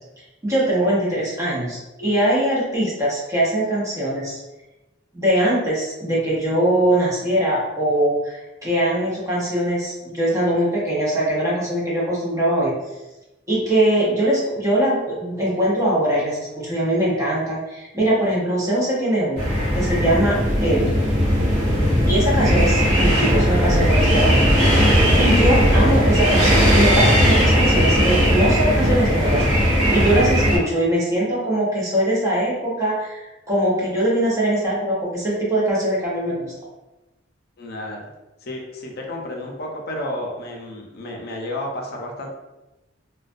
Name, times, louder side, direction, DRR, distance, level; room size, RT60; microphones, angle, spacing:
voice 1, 0.4-4.4 5.1-12.7 13.5-19.5 19.7-21.0 22.1-24.7 25.2-36.5, right 1 dB, 15° right, -7 dB, 0.7 m, -22 dB
sound 1, 19.4-30.6, equal, 50° right, 1.1 m, -17 dB
voice 2, 37.6-38.0 38.4-42.4, left 1 dB, 55° left, 0 dB, 0.5 m, -31 dB
2.3 x 2.2 x 2.5 m, 1.0 s
head